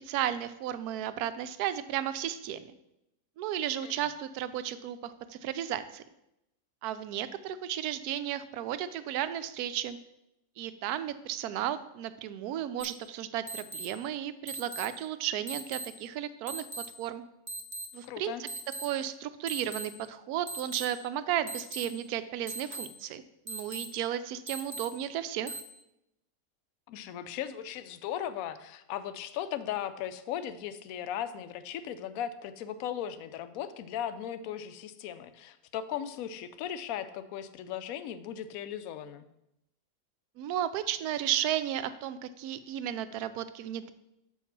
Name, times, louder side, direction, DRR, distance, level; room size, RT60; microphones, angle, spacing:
voice 1, 0.0-2.6 3.4-6.0 6.8-10.0 10.6-16.7 17.0-17.2 17.9-18.5 18.8-25.5 40.4-43.9, right 11 dB, 75° right, 13 dB, 1.0 m, -34 dB
sound 1, 12.8-12.9 13.5-13.9 14.5-14.9 15.5-15.9 16.5-16.9 17.5-17.9 18.5-18.9 19.5-19.8 20.5-20.8 21.5-21.8 22.5-22.8 23.5-23.8 24.5-24.8 25.5-25.6, right 2 dB, 30° right, 0.5 m, -38 dB
voice 2, 18.0-18.4 26.9-39.3, left 10 dB, 70° left, 12 dB, 0.9 m, -37 dB
7.1 x 4.6 x 5.8 m, 0.85 s
omnidirectional pair, 1.8 m